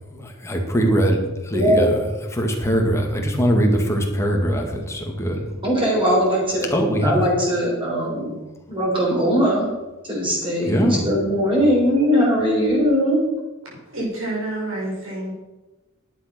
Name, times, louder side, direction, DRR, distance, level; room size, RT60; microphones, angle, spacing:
voice 1, 0.1-1.9 2.3-5.5 6.7-7.2 8.3-8.4 10.7-11.0, equal, 15° left, 1 dB, 2.0 m, -21 dB
voice 2, 1.5-1.8 5.6-8.3 8.7-9.7 10.0-13.2, equal, 25° right, -5 dB, 3.9 m, -20 dB
voice 3, 13.6-15.3, right 1 dB, 70° right, -5 dB, 5.2 m, -29 dB
11.5 x 8.9 x 6.1 m, 1.1 s
head